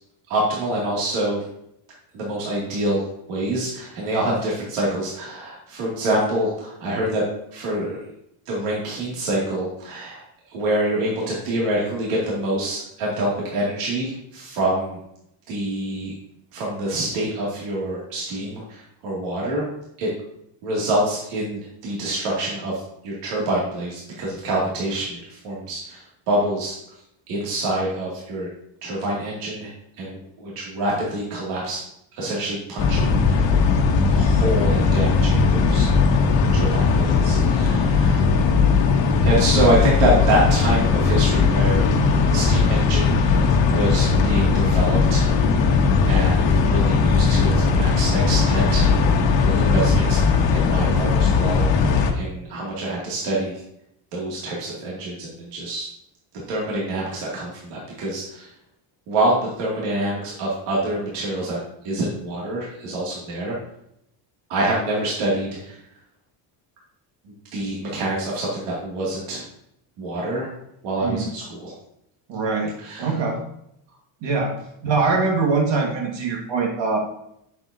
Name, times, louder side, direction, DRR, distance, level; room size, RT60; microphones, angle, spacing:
voice 1, 0.3-1.4 2.1-7.2 7.5-8.0 8.5-10.2 10.5-15.0 15.5-16.1 16.5-19.7 20.0-20.1 20.6-26.0 26.3-26.8 27.3-28.5 28.8-29.7 30.0-31.8 32.2-33.5 34.1-35.9 36.5-38.3 39.2-41.9 42.3-43.2 43.7-45.3 46.1-48.9 49.4-50.2 50.5-53.6 54.1-55.9 56.5-58.5 59.1-61.6 61.8-63.6 64.5-65.8 67.5-69.4 70.0-70.5 70.8-71.7 72.8-73.1, right 1 dB, 75° right, -5 dB, 2.6 m, -26 dB
sound 1, 32.8-52.1, left 4 dB, 60° left, 1.2 m, -18 dB
voice 2, 72.3-72.7 73.0-73.4 74.2-74.5 74.8-77.0, right 4 dB, 60° right, 0 dB, 1.9 m, -22 dB
7.8 x 7.2 x 2.8 m, 0.76 s
cardioid pair, 125°, 50 cm